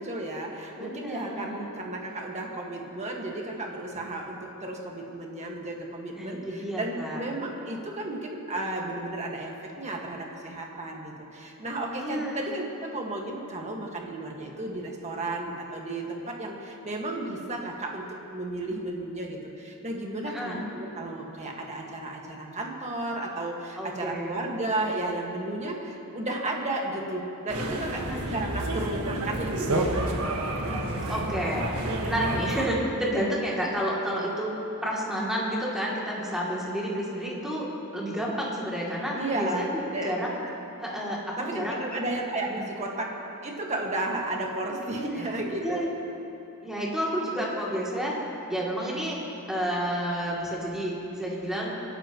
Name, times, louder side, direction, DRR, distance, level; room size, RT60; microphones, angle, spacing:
voice 1, 0.0-18.0 18.3-28.0 28.3-30.1 39.1-40.1 40.4-40.5 41.4-45.9, right 2 dB, 30° right, 0 dB, 1.7 m, -33 dB
voice 2, 0.8-1.6 6.1-7.2 12.0-12.4 20.3-20.6 23.8-24.4 27.9-28.3 31.1-31.8 32.0-34.5 34.8-37.7 37.9-39.7 40.0-40.3 40.8-41.9 42.6-42.7 45.1-45.3 45.6-45.9 46.6-48.1 48.5-49.2 49.5-51.7, equal, ahead, -6 dB, 2.7 m, -30 dB
sound 1, 27.5-32.7, right 1 dB, 85° right, 1.5 m, -29 dB
27.5 x 11.0 x 3.1 m, 3.0 s
head